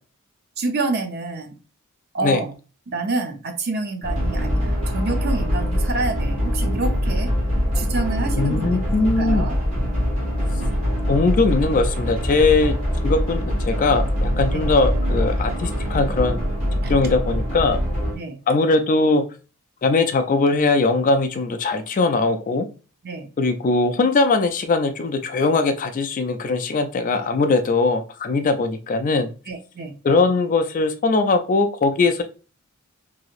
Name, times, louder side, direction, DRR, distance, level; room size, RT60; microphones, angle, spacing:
voice 1, 0.6-1.5 2.1-2.5 2.9-7.3 7.7-8.8 9.2-9.6 14.5-14.7 16.8-16.9 18.1-18.4 23.0-23.3 29.5-30.0, right 3 dB, 45° right, 0.5 m, -28 dB
sound 1, 4.0-18.1, equal, 30° right, 1.4 m, -23 dB
voice 2, 8.4-9.5 11.1-12.8 13.0-16.4 16.9-17.8 18.5-19.3 19.8-22.7 23.4-29.3 30.0-32.2, left 3 dB, 35° left, 0.3 m, -20 dB
3.0 x 2.7 x 2.4 m
head